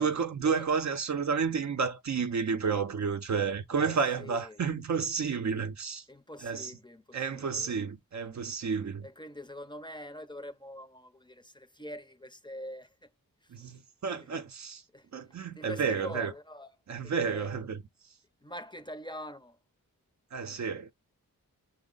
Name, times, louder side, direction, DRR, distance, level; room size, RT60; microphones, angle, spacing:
voice 1, 0.0-6.0 6.4-6.7 7.1-9.1 13.5-14.8 15.1-16.3 16.9-17.8 20.3-20.9, right 5 dB, 50° right, 0.6 m, -31 dB
voice 2, 3.8-4.6 6.1-7.7 9.0-13.1 13.4-13.8 14.1-14.3 14.9-16.8 17.0-17.5 18.4-19.6, left 1 dB, 15° left, 0.6 m, -44 dB
6.2 x 2.1 x 3.7 m
cardioid pair, 70°, 35 cm